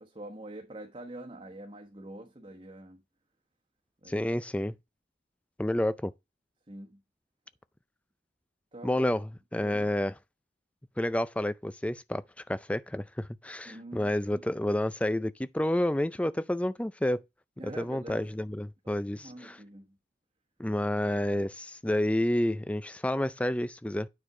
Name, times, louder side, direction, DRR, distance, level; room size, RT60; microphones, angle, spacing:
voice 1, 0.0-3.0 4.0-4.2 6.7-7.0 8.7-9.1 9.6-9.9 13.6-14.4 17.6-18.3 19.1-20.0, right 1 dB, 30° right, 1.2 m, -45 dB
voice 2, 4.1-4.8 5.6-6.1 8.8-10.1 11.0-17.2 17.6-19.6 20.6-24.1, left 1 dB, 5° left, 0.4 m, -30 dB
9.5 x 4.4 x 4.8 m
head